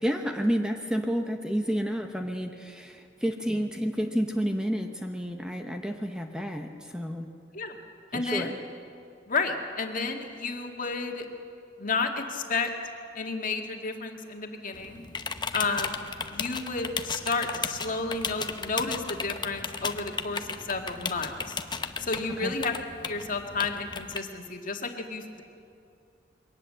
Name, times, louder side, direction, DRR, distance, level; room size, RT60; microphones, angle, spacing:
voice 1, 0.0-7.3 8.1-8.6 22.4-22.5, equal, 5° right, 4 dB, 0.9 m, -30 dB
voice 2, 8.1-8.5 9.3-11.3 11.8-12.7 13.2-15.0 15.5-16.0 16.3-21.6 22.0-22.8 23.0-25.4, left 4 dB, 45° left, 3 dB, 2.0 m, -31 dB
sound 1, 14.7-24.2, left 5 dB, 25° left, 0.8 m, -35 dB
22.5 x 18.5 x 7.7 m, 2.5 s
head